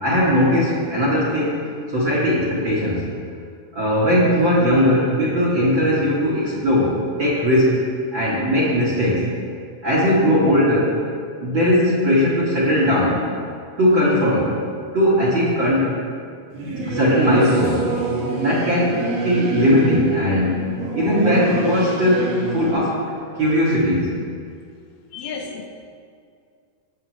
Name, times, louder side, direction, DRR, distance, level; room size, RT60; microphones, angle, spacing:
voice 1, 0.0-1.6 1.9-3.1 3.7-7.8 8.1-9.3 9.8-11.0 11.4-13.2 13.8-14.6 14.9-15.9 16.9-17.8 18.4-23.0 23.3-24.1, equal, 40° right, -7 dB, 2.1 m, -19 dB
Singing / Musical instrument, 16.5-22.7, right 3 dB, 80° right, 4.5 m, -26 dB
voice 2, 25.1-25.7, left 5 dB, 80° left, 3 dB, 2.7 m, -32 dB
19.5 x 7.8 x 3.3 m, 2.2 s
omnidirectional pair, 4.5 m